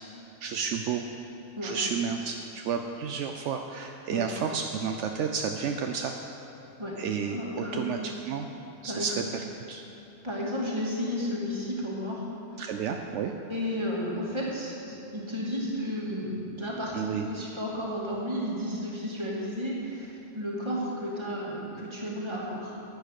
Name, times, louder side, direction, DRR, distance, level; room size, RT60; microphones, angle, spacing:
voice 1, 0.4-1.0 1.6-6.1 7.0-8.5 8.8-9.8 12.6-13.3 16.9-17.3, right 6 dB, 75° right, 4 dB, 0.9 m, -31 dB
voice 2, 7.3-8.1 8.8-9.2 10.2-12.3 13.5-22.8, equal, 20° right, -5 dB, 2.2 m, -33 dB
10.5 x 8.4 x 6.5 m, 3.0 s
omnidirectional pair, 1.3 m